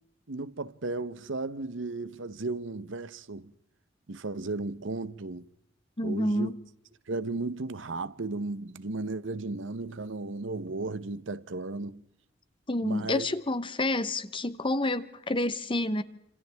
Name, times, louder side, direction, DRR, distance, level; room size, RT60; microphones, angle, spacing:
voice 1, 0.3-3.5 4.1-5.5 6.0-6.5 7.1-12.0 12.8-13.3, right 3 dB, 75° right, 0.9 m, -35 dB
voice 2, 6.0-6.6 12.7-16.0, left 1 dB, 25° left, 1.0 m, -29 dB
28.5 x 27.0 x 3.5 m
head